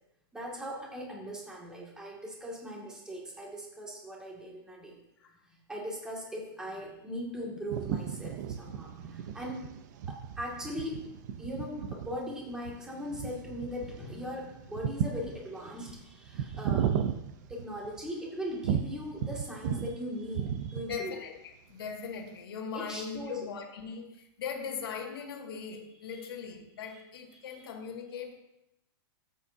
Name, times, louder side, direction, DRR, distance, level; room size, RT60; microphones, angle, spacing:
voice 1, 0.3-5.0 5.5-9.7 10.1-11.1 11.4-17.1 17.5-21.2 22.7-23.4 26.1-26.3, equal, 5° right, -4 dB, 2.2 m, -39 dB
sound 1, 7.7-18.1 18.6-20.0 20.2-21.1, right 8 dB, 50° right, 0.7 m, -35 dB
voice 2, 20.9-28.4, left 6 dB, 80° left, 2 dB, 2.1 m, -39 dB
13.0 x 8.2 x 2.8 m, 0.86 s
supercardioid pair, 155°, 12 cm